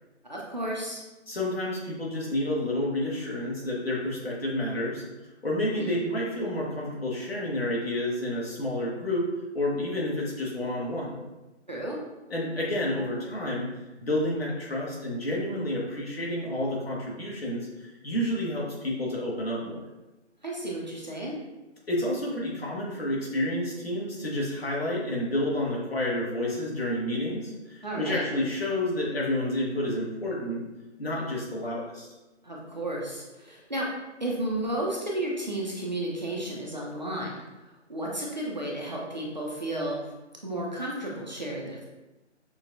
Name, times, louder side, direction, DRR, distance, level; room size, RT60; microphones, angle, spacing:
voice 1, 0.3-1.0 5.7-5.9 11.7-12.0 20.4-21.4 27.8-28.2 32.4-33.9 34.2-37.4 37.9-40.0 40.4-41.9, right 1 dB, 40° right, -3 dB, 0.5 m, -32 dB
voice 2, 1.3-5.0 5.4-9.3 9.5-11.2 12.3-13.7 14.0-19.8 21.9-30.6 31.0-32.1, left 1 dB, 55° left, -4 dB, 1.2 m, -30 dB
5.9 x 2.3 x 2.5 m, 1.1 s
figure-of-eight pair, 165°, 36 cm